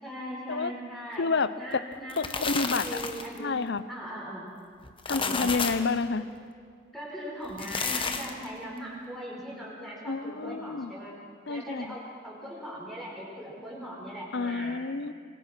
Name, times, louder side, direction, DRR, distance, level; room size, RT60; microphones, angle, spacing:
voice 1, 0.0-1.3 1.6-3.6 3.9-4.4 5.1-5.5 6.9-11.1 11.5-14.8, equal, ahead, -5 dB, 4.9 m, -39 dB
voice 2, 1.1-1.8 2.2-3.0 3.4-3.8 5.1-6.2 10.1-10.9 11.5-12.0 14.3-15.1, left 4 dB, 60° left, 15 dB, 0.7 m, -29 dB
sound 1, 1.9-3.4 4.8-5.9 7.4-8.5, left 5 dB, 25° left, 1.3 m, -32 dB
26.5 x 23.0 x 6.2 m, 2.1 s
head